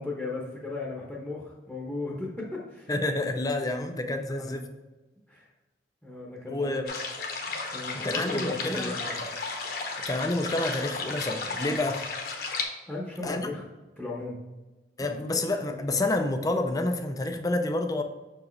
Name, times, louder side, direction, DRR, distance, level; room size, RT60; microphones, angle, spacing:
voice 1, 0.0-2.9 4.1-4.6 5.3-5.5 6.0-6.7 7.7-9.3 12.9-13.6 14.0-14.4 15.0-15.1 15.6-15.8, left 2 dB, ahead, -4 dB, 0.9 m, -36 dB
voice 2, 2.9-4.6 6.5-6.9 7.9-8.9 10.0-12.0 13.2-13.5 15.0-18.0, left 2 dB, 20° left, 6 dB, 0.4 m, -29 dB
sound 1, 6.9-12.6, left 4 dB, 55° left, 1.0 m, -34 dB
6.3 x 4.8 x 3.2 m, 1.2 s
head